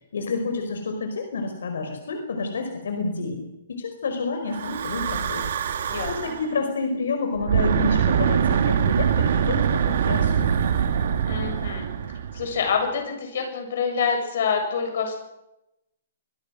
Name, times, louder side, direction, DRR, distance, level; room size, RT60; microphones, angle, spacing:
voice 1, 0.1-5.5 6.1-10.9, left 3 dB, 80° left, 5 dB, 4.9 m, -29 dB
Breathing / Wind, 4.5-6.5 7.4-12.7, right 8 dB, 55° right, 2.8 m, -24 dB
voice 2, 11.3-11.9 12.3-15.2, left 6 dB, 50° left, 4 dB, 7.6 m, -26 dB
25.5 x 22.0 x 6.4 m, 0.91 s
hypercardioid pair, 170°, 0 cm